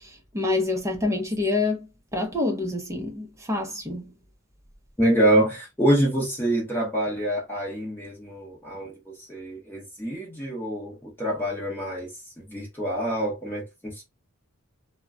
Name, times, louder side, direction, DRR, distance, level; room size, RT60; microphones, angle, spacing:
voice 1, 0.0-4.1, left 2 dB, 15° right, 0.6 m, -27 dB
voice 2, 5.0-12.1 12.4-14.0, right 1 dB, 10° left, 0.9 m, -26 dB
2.2 x 2.2 x 3.5 m
head